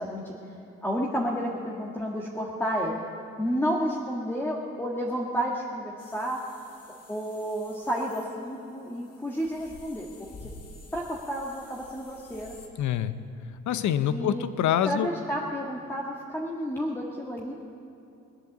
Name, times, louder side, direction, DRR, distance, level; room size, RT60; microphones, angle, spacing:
voice 1, 0.0-3.0 3.4-6.4 7.1-10.3 10.9-12.6 14.1-14.4 14.9-17.7, equal, 10° left, -3 dB, 1.7 m, -31 dB
sound 1, 6.0-12.7, left 2 dB, 55° left, 2.1 m, -50 dB
voice 2, 12.8-13.1 13.7-15.1, left 10 dB, 70° left, 12 dB, 0.8 m, -25 dB
20.5 x 8.0 x 7.3 m, 2.7 s
cardioid pair, 90°, 30 cm